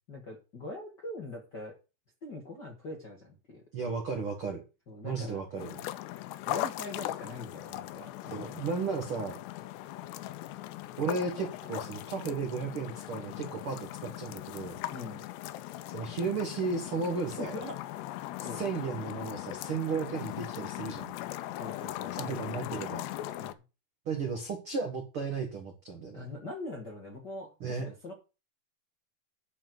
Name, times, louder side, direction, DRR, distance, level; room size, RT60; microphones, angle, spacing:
voice 1, 0.1-1.8 2.2-3.6 4.9-5.4 6.5-8.6 14.9-15.2 17.4-17.8 18.4-18.6 21.6-22.1 23.4-23.5 26.1-28.1, left 2 dB, 45° left, -1 dB, 1.3 m, -42 dB
voice 2, 3.7-4.6 5.0-5.8 8.3-9.4 11.0-14.8 15.9-17.5 18.4-21.1 22.1-23.1 24.0-26.2 27.6-27.9, right 4 dB, 80° right, 4 dB, 1.2 m, -34 dB
sound 1, 5.6-23.5, left 15 dB, 90° left, 2.9 m, -39 dB
11.0 x 4.6 x 7.7 m, 0.31 s
omnidirectional pair, 4.8 m